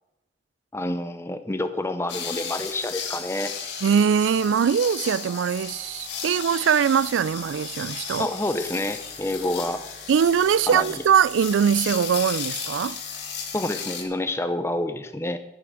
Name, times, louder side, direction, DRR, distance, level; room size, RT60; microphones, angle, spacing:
voice 1, 0.7-3.5 8.2-9.9 10.7-11.0 13.5-15.4, left 1 dB, 15° left, 0.6 m, -28 dB
sound 1, 2.1-14.0, left 6 dB, 65° left, 1.9 m, -35 dB
voice 2, 3.8-8.3 10.1-13.0, right 7 dB, 90° right, 0.3 m, -22 dB
13.5 x 5.9 x 6.3 m
head